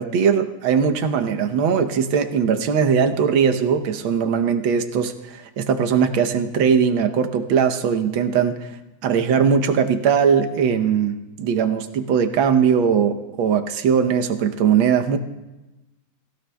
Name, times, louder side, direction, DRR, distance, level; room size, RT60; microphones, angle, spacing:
voice 1, 0.0-8.7 9.0-15.2, right 7 dB, 85° right, 7 dB, 1.7 m, -20 dB
23.5 x 16.0 x 2.2 m, 1.0 s
omnidirectional pair, 2.1 m